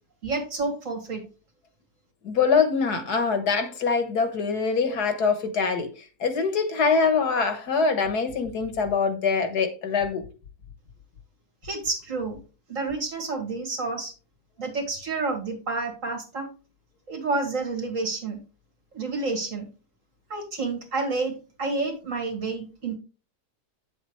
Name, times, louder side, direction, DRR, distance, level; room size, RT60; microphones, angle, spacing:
voice 1, 0.2-1.2 11.6-12.4 12.7-14.1 14.6-16.5 17.1-18.4 18.9-19.6 20.3-23.0, right 3 dB, 50° right, 2.5 m, -29 dB
voice 2, 2.2-5.9 6.2-10.2, left 5 dB, 70° left, 1.8 m, -24 dB
9.2 x 7.3 x 3.2 m
omnidirectional pair, 1.7 m